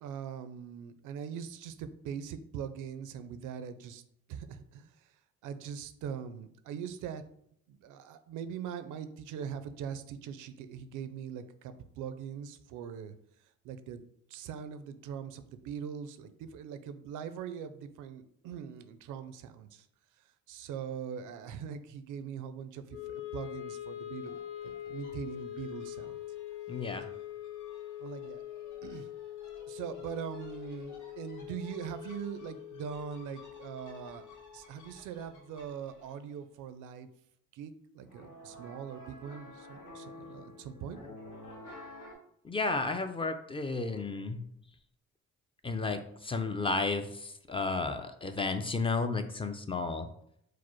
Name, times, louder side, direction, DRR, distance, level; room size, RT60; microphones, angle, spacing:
voice 1, 0.0-4.0 4.3-4.9 5.4-7.2 7.7-13.1 13.6-14.0 14.3-19.9 20.5-24.4 24.9-26.2 28.0-28.4 28.8-29.1 29.7-34.2 34.5-37.1 37.5-41.0, right 8 dB, 85° right, 11 dB, 0.5 m, -41 dB
Wind instrument woodwind instrument, 22.9-35.1, left 12 dB, 55° left, 0.9 m, -44 dB
sound 1, 24.2-36.4 38.0-42.1, left 1 dB, 75° left, 1.3 m, -53 dB
voice 2, 26.7-27.1 42.4-44.4 45.6-50.1, left 3 dB, 20° left, 7 dB, 0.4 m, -32 dB
4.8 x 2.0 x 4.4 m, 0.72 s
cardioid pair, 90°, 30 cm